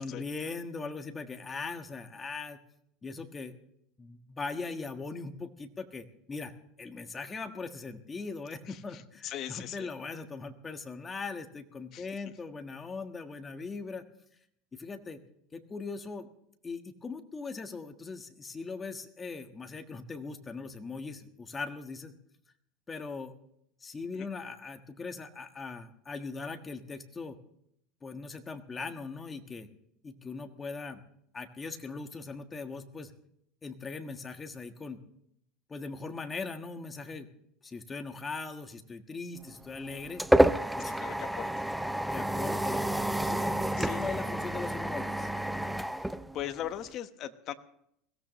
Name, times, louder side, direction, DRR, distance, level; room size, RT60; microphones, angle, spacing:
voice 1, 0.0-2.6 3.0-3.5 4.0-6.5 6.8-14.0 14.7-15.2 15.5-16.3 16.6-22.1 22.9-23.3 23.8-27.4 28.0-29.7 30.0-31.0 31.3-33.1 33.6-35.0 35.7-37.3 37.6-40.2 40.8-40.9 42.1-42.9 43.3-45.3, left 4 dB, 20° left, 6 dB, 1.5 m, -40 dB
voice 2, 8.7-9.9 11.9-12.1 24.2-24.3 40.8-41.8 43.8-44.1 46.0-46.1 46.3-47.5, left 11 dB, 40° left, 9 dB, 1.2 m, -40 dB
sound 1, 39.5-46.9, right 1 dB, ahead, 0.5 m, -29 dB
21.5 x 16.5 x 3.1 m, 0.71 s
supercardioid pair, 140°, 0 cm